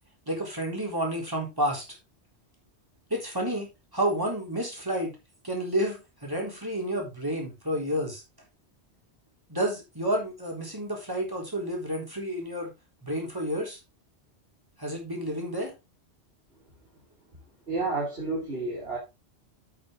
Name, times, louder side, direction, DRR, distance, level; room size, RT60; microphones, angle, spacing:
voice 1, 0.3-1.8 3.1-3.7 3.9-5.1 5.4-8.2 9.5-12.7 13.0-13.8 14.8-15.7, right 1 dB, 20° right, 3.8 m, -30 dB
voice 2, 17.7-19.0, right 3 dB, 65° right, 3.1 m, -30 dB
8.6 x 8.4 x 3.8 m
omnidirectional pair, 1.1 m